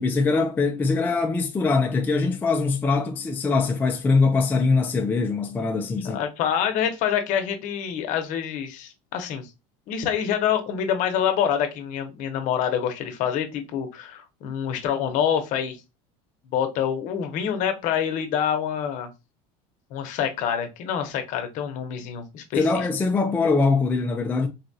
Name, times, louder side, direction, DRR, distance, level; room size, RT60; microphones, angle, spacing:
voice 1, 0.0-6.2 22.6-24.5, left 4 dB, 10° left, 0.4 m, -22 dB
voice 2, 6.0-9.5 9.9-15.8 16.5-19.1 19.9-22.8, left 8 dB, 55° left, 0.8 m, -26 dB
4.0 x 2.2 x 2.7 m
cardioid pair, 135°, 16 cm